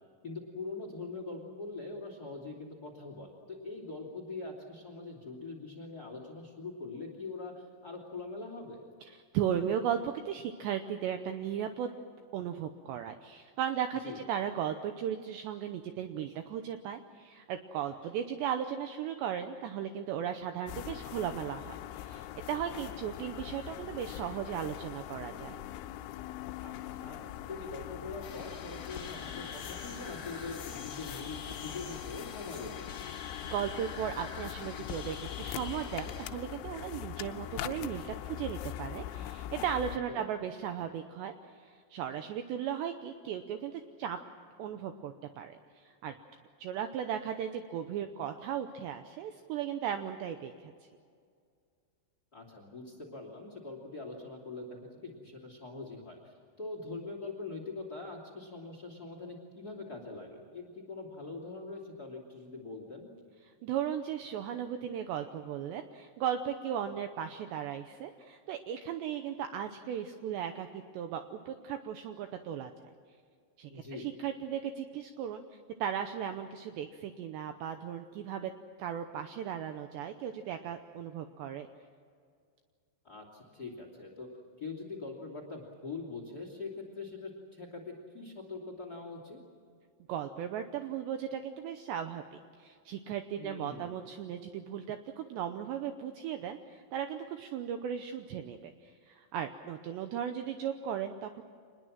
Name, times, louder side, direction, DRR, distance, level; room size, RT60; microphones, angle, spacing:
voice 1, 0.2-8.9 14.0-14.2 26.6-27.2 27.5-32.9 40.1-40.3 52.3-63.1 73.7-74.1 83.0-84.3 84.6-89.4 93.4-94.0, left 3 dB, 25° left, 3 dB, 2.5 m, -43 dB
voice 2, 9.0-11.9 12.3-25.6 33.5-44.2 44.6-46.1 46.6-50.7 63.4-72.7 73.6-78.5 78.8-81.7 90.1-92.2 92.6-101.4, right 9 dB, 80° right, 7 dB, 2.6 m, -36 dB
sound 1, 20.7-40.0, left 12 dB, 80° left, 3.0 m, -42 dB
sound 2, 28.2-36.3, left 5 dB, 40° left, 2.0 m, -46 dB
26.0 x 20.5 x 7.5 m, 2.2 s
omnidirectional pair, 5.9 m